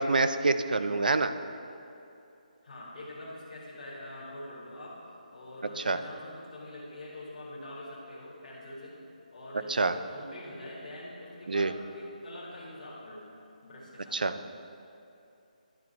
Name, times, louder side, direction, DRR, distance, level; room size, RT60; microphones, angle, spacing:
voice 1, 0.0-1.3 5.9-6.0 9.7-9.9 11.5-11.7 14.1-14.3, right 3 dB, 80° right, 11 dB, 0.4 m, -26 dB
voice 2, 2.6-5.0 5.3-9.0 9.3-13.3 13.6-14.3, left 1 dB, 50° left, -7 dB, 1.6 m, -44 dB
10.5 x 4.3 x 4.2 m, 2.7 s
figure-of-eight pair, 155°, 5 cm